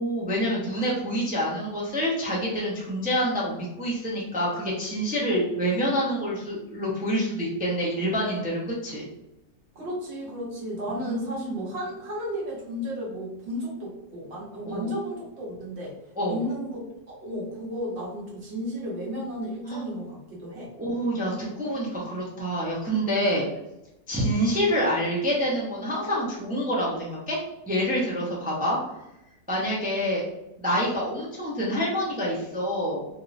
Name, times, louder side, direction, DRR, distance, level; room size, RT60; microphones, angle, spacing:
voice 1, 0.0-9.0 11.1-11.6 14.6-14.9 16.2-16.4 19.7-19.8 20.8-23.5 24.1-28.8 29.5-30.2 30.6-33.0, equal, 10° right, -5 dB, 0.4 m, -27 dB
voice 2, 9.7-15.9 16.3-20.7, equal, 45° right, -4 dB, 1.2 m, -33 dB
3.5 x 2.8 x 2.5 m, 0.88 s
omnidirectional pair, 1.7 m